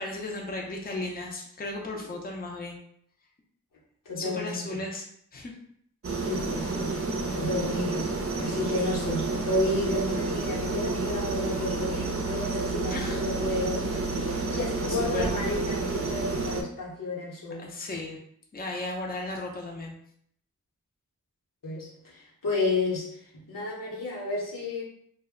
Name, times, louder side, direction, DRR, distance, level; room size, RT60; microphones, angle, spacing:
voice 1, 0.0-2.8 4.2-5.5 12.9-13.2 14.9-15.3 17.6-18.2 18.5-19.9, left 2 dB, 30° left, 0 dB, 0.5 m, -35 dB
voice 2, 4.0-4.8 6.3-17.7 21.6-24.8, left 2 dB, 85° left, -5 dB, 0.9 m, -32 dB
sound 1, 6.0-16.6, right 3 dB, 45° right, 0.5 m, -30 dB
2.1 x 2.0 x 3.5 m, 0.67 s
wide cardioid pair, 45°, 32 cm